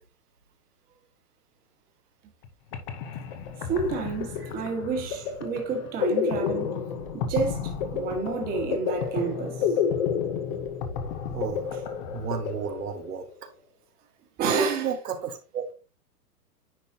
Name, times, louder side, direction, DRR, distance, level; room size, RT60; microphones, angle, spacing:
sound 1, 2.4-2.5 2.7-13.3, left 7 dB, 30° left, 0.8 m, -30 dB
voice 1, 3.7-6.8 7.1-9.6 14.4-14.9, right 4 dB, 20° right, 1.5 m, -29 dB
voice 2, 11.3-13.5 14.5-15.7, right 8 dB, 85° right, 1.5 m, -33 dB
9.8 x 4.0 x 2.8 m
hypercardioid pair, 150°, 45 cm